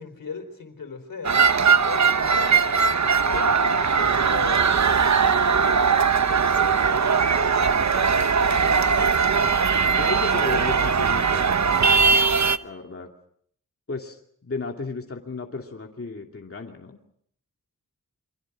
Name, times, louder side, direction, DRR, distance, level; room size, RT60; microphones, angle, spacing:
voice 1, 0.0-1.4 1.8-4.6, left 5 dB, 80° left, 7 dB, 4.4 m, -38 dB
sound 1, 1.2-12.6, right 5 dB, 55° right, 1.0 m, -20 dB
voice 2, 7.7-8.4 10.0-11.5 12.6-13.1 13.9-17.0, left 3 dB, 40° left, 1 dB, 2.6 m, -34 dB
28.5 x 24.5 x 6.2 m, 0.64 s
wide cardioid pair, 75°, 33 cm